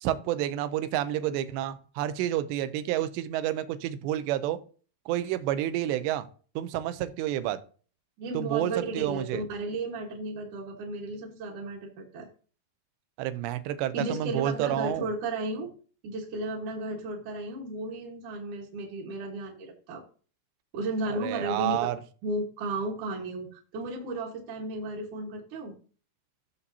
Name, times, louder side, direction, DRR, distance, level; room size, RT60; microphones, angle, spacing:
voice 1, 0.0-4.6 5.1-6.3 6.6-7.6 8.3-9.4 13.2-15.1 21.1-22.0, right 12 dB, 85° right, 11 dB, 2.9 m, -29 dB
voice 2, 8.2-12.3 13.9-15.7 16.0-20.0 20.7-21.9 22.2-25.7, right 2 dB, 60° right, -3 dB, 2.3 m, -34 dB
14.0 x 7.0 x 2.7 m, 0.41 s
omnidirectional pair, 5.0 m